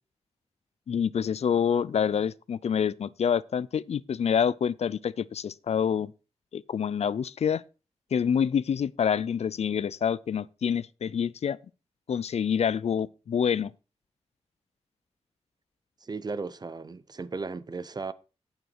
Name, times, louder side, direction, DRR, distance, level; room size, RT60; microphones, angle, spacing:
voice 1, 0.9-6.1 6.5-7.6 8.1-11.6 12.1-13.7, left 7 dB, 70° left, 0.4 m, -27 dB
voice 2, 16.0-18.1, right 4 dB, 35° right, 0.6 m, -35 dB
8.9 x 8.0 x 4.5 m
wide cardioid pair, 115°, 11 cm